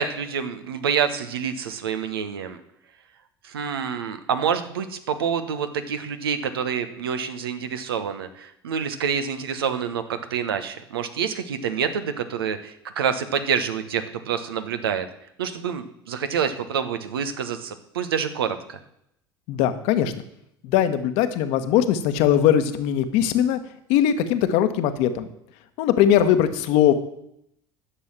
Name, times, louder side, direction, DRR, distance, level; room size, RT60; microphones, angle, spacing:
voice 1, 0.0-2.6 3.4-15.1 15.4-18.8, right 7 dB, 75° right, 9 dB, 1.1 m, -27 dB
voice 2, 19.5-20.1 20.6-23.6 23.9-25.3 25.8-26.9, left 10 dB, 60° left, 10 dB, 1.2 m, -20 dB
11.5 x 6.8 x 7.5 m, 0.76 s
figure-of-eight pair, 70°, 12 cm